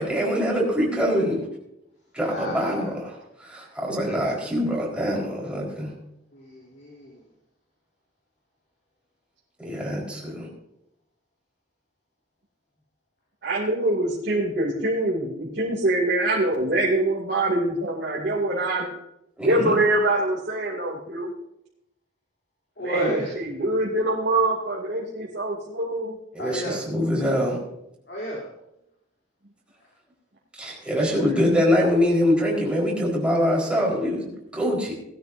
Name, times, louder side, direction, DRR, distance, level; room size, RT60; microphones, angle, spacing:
voice 1, 0.0-1.5 2.1-5.9 9.6-10.5 19.4-19.8 26.3-27.6 30.5-34.9, equal, 5° right, -3 dB, 4.4 m, -24 dB
voice 2, 2.3-2.7 4.0-4.3 6.3-7.1 22.8-23.3 26.4-26.8 28.1-28.4 30.9-31.4, right 1 dB, 55° left, -4 dB, 3.2 m, -31 dB
voice 3, 13.4-18.9 19.4-21.3 22.8-26.1, right 2 dB, 55° right, -4 dB, 2.8 m, -24 dB
19.5 x 13.0 x 2.7 m, 0.82 s
head